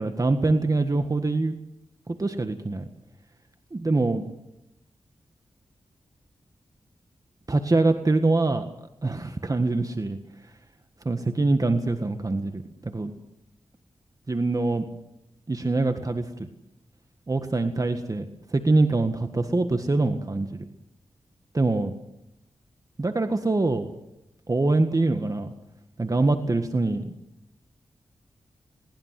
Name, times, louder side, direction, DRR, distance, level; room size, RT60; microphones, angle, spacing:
voice 1, 0.0-1.5 2.1-2.9 3.7-4.2 7.5-8.6 9.0-10.2 11.1-13.1 14.3-14.9 15.5-16.5 17.3-18.3 18.5-20.6 21.5-22.0 23.0-23.9 24.5-25.5 26.0-27.1, right 2 dB, 35° right, 7 dB, 1.7 m, -24 dB
21.0 x 19.5 x 7.7 m, 0.86 s
cardioid pair, 65°, 10 cm